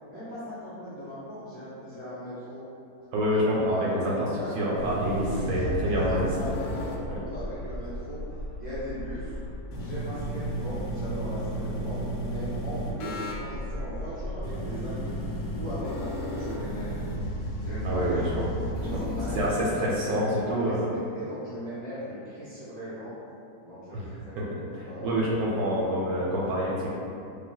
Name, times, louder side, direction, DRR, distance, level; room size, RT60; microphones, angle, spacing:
voice 1, 0.1-2.6 3.3-8.2 8.6-9.3 9.7-15.2 15.5-17.0 17.6-19.4 20.1-23.1 23.6-25.9 26.2-26.4, equal, 30° left, -13 dB, 0.8 m, -38 dB
voice 2, 3.1-4.1 4.5-6.3 17.8-18.3 18.9-19.0 19.3-20.9 23.9-24.1 24.4-26.9, equal, 75° right, -6 dB, 1.0 m, -27 dB
sound 1, 4.7-19.5, equal, 85° left, 1.2 m, -33 dB
3.1 x 2.5 x 2.2 m, 2.6 s
omnidirectional pair, 1.8 m